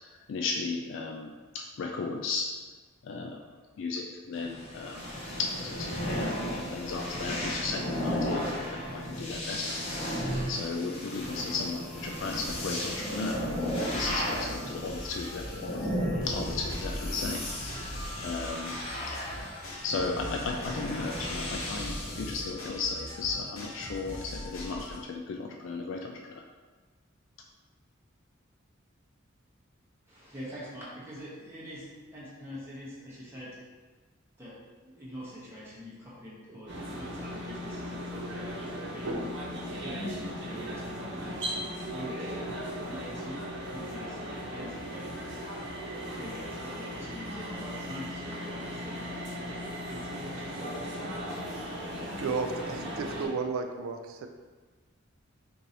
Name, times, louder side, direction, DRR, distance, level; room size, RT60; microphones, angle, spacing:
voice 1, 0.3-2.5 3.0-3.4 3.8-5.1 5.4-15.9 16.2-18.8 19.1-19.2 19.8-26.4, left 4 dB, 65° left, 1 dB, 0.3 m, -35 dB
sound 1, 4.3-22.4, equal, 30° left, 0.7 m, -35 dB
sound 2, 13.2-25.0, equal, 85° left, 0.9 m, -42 dB
voice 2, 30.1-31.8 32.1-33.6 34.4-34.5 34.8-39.1 39.8-42.3 42.7-43.4 43.6-45.0 46.2-50.9, equal, 10° right, -8 dB, 0.9 m, -44 dB
sound 3, 36.7-53.3, equal, 60° right, 1.0 m, -37 dB
voice 3, 52.2-54.3, right 4 dB, 90° right, 6 dB, 0.4 m, -33 dB
4.6 x 2.6 x 2.8 m, 1.3 s
head